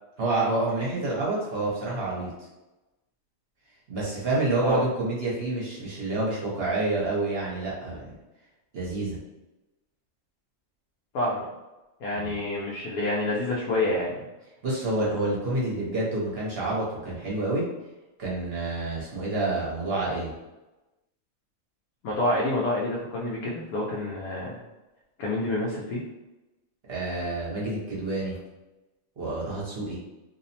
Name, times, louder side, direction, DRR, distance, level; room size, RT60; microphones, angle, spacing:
voice 1, 0.2-2.3 3.9-8.1 8.7-9.2 12.1-12.4 14.6-17.7 18.2-20.3 26.9-28.4 29.2-30.0, right 2 dB, 50° right, -6 dB, 0.9 m, -28 dB
voice 2, 11.1-11.5 12.0-14.2 22.0-24.6 25.2-26.0, left 1 dB, 85° left, -4 dB, 1.1 m, -28 dB
2.8 x 2.0 x 2.7 m, 1.0 s
omnidirectional pair, 1.5 m